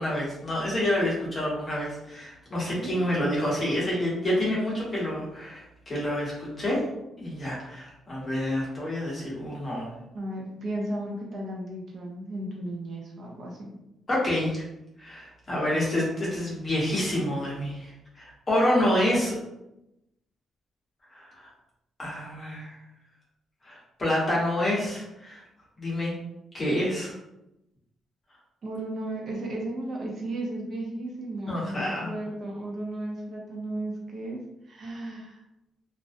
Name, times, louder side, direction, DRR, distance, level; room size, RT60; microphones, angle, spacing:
voice 1, 0.0-6.8 7.2-9.9 14.1-14.6 15.0-19.4 21.1-21.5 22.0-22.8 23.6-25.4 25.8-26.2 26.5-27.1 31.5-32.1, left 1 dB, 25° left, -6 dB, 0.8 m, -28 dB
voice 2, 10.1-13.7 28.6-34.4 34.6-35.4, right 1 dB, 40° right, -2 dB, 0.4 m, -34 dB
2.4 x 2.0 x 2.5 m, 0.88 s
cardioid pair, 170°, 0 cm